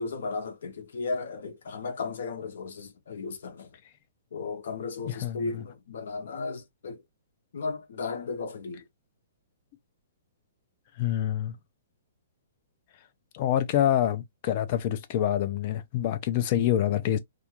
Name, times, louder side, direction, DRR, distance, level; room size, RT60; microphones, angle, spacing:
voice 1, 0.0-3.7 4.3-7.0 7.5-8.9, left 4 dB, 70° left, 0.8 m, -35 dB
voice 2, 5.1-5.6 11.0-11.6 13.3-17.2, left 11 dB, 35° left, 0.5 m, -26 dB
2.4 x 2.4 x 2.8 m
hypercardioid pair, 165°, 0 cm